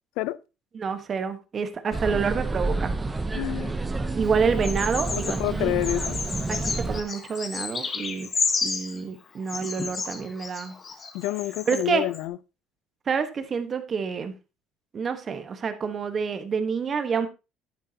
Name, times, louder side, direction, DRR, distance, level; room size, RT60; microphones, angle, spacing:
voice 1, 0.7-2.9 4.1-5.7 6.5-8.3 8.6-10.7 11.7-12.0 13.1-14.3 14.9-17.3, right 6 dB, 30° right, 1.2 m, -28 dB
sound 1, 1.9-7.0, right 2 dB, 15° right, 0.8 m, -29 dB
voice 2, 3.3-3.7 5.1-6.2 11.1-12.4, left 16 dB, 80° left, 0.5 m, -28 dB
Bird vocalization bird call bird song, 4.6-5.4 5.8-9.0 9.5-11.8 12.1-12.2, left 4 dB, 30° left, 1.4 m, -31 dB
10.5 x 10.0 x 2.8 m
cardioid pair, 130°, 0 cm